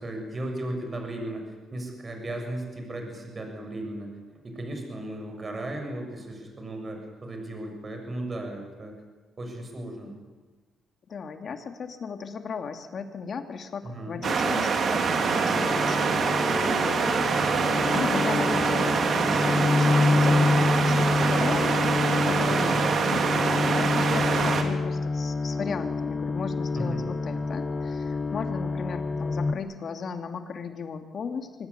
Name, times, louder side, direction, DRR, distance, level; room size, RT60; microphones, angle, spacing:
voice 1, 0.0-1.4 1.7-4.1 4.4-8.9 9.4-10.2 13.8-14.2 22.4-22.8 26.8-27.0, right 1 dB, 30° right, 3 dB, 7.0 m, -35 dB
voice 2, 11.1-17.1 17.8-31.7, left 5 dB, 50° left, 7 dB, 2.7 m, -36 dB
sound 1, 14.2-24.6, right 5 dB, 55° right, 3.0 m, -25 dB
sound 2, 15.5-29.5, left 3 dB, 30° left, 1.8 m, -27 dB
24.0 x 18.5 x 9.9 m, 1.3 s
cardioid pair, 90°, 0 cm